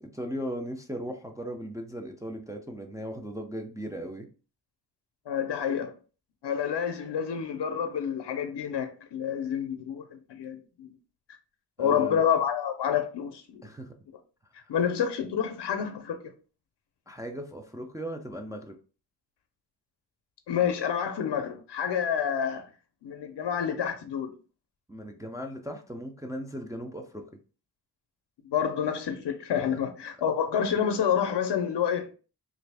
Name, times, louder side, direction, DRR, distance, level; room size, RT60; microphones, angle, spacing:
voice 1, 0.0-4.3 11.8-12.2 13.6-13.9 17.1-18.8 24.9-27.2, equal, 10° right, 0.3 m, -37 dB
voice 2, 5.3-5.9 6.4-10.9 11.8-13.6 14.7-16.2 20.5-22.7 23.0-24.3 28.5-32.1, left 8 dB, 85° left, 0.6 m, -28 dB
3.2 x 2.5 x 3.3 m
wide cardioid pair, 135°, 40 cm